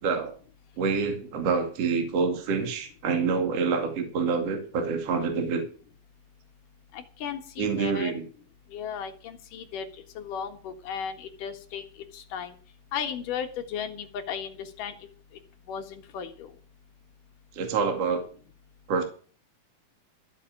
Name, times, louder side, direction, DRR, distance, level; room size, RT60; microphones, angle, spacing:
voice 1, 0.0-0.3 0.8-5.7 7.6-8.2 17.5-18.3 18.9-19.0, right 5 dB, 45° right, 5 dB, 3.0 m, -27 dB
voice 2, 6.9-8.1 8.7-9.9 10.2-11.8 12.1-12.5 12.9-14.9 15.7-16.5, left 7 dB, 65° left, 6 dB, 2.9 m, -35 dB
14.0 x 7.3 x 8.7 m, 0.41 s
omnidirectional pair, 4.5 m